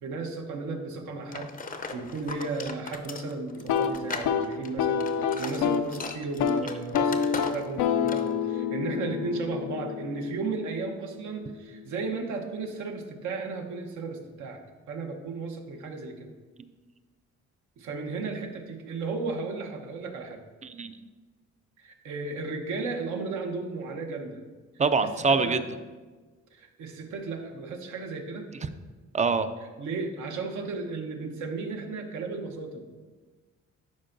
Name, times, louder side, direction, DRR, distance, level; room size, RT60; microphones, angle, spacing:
voice 1, 0.0-14.6 14.9-16.3 17.8-20.4 21.8-24.4 25.3-25.6 26.5-28.5 29.8-32.9, right 3 dB, 75° right, 3 dB, 1.0 m, -34 dB
sound 1, 1.3-7.8 8.1-8.3, left 4 dB, 30° left, 0.5 m, -39 dB
sound 2, 3.6-5.9 6.2-6.6 6.9-10.8, left 7 dB, 80° left, 0.5 m, -28 dB
voice 2, 20.6-21.0 24.8-25.6 29.1-29.5, right 4 dB, 25° right, 10 dB, 0.4 m, -24 dB
11.0 x 4.4 x 2.6 m, 1.3 s
cardioid pair, 90°, 30 cm